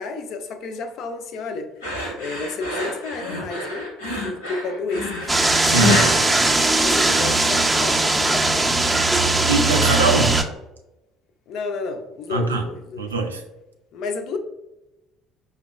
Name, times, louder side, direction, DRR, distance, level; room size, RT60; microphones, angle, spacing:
voice 1, 0.0-1.7 2.2-3.9 4.2-5.3 6.8-8.6 9.8-10.2 11.5-13.1 13.9-14.4, left 3 dB, 55° left, 0.4 m, -31 dB
sound 1, 1.8-7.3, left 1 dB, 85° left, 0.8 m, -27 dB
sound 2, 5.3-10.4, right 2 dB, 15° right, 0.4 m, -19 dB
voice 2, 5.7-6.0 9.5-10.3 12.3-12.6 13.0-13.4, right 3 dB, 85° right, 0.4 m, -22 dB
5.1 x 2.2 x 2.3 m
figure-of-eight pair, 55°, 0 cm